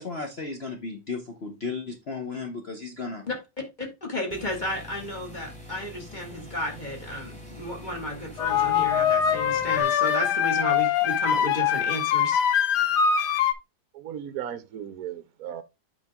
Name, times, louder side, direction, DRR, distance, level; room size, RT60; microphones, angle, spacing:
voice 1, 0.0-3.2, left 4 dB, 40° left, 1.1 m, -34 dB
voice 2, 3.8-12.4, equal, 25° left, 2.4 m, -33 dB
sound 1, 4.3-9.8, left 1 dB, 5° left, 2.5 m, -44 dB
sound 2, 8.4-13.5, left 8 dB, 70° left, 1.3 m, -23 dB
voice 3, 13.9-15.6, right 10 dB, 65° right, 1.0 m, -36 dB
8.6 x 5.2 x 3.6 m
omnidirectional pair, 1.9 m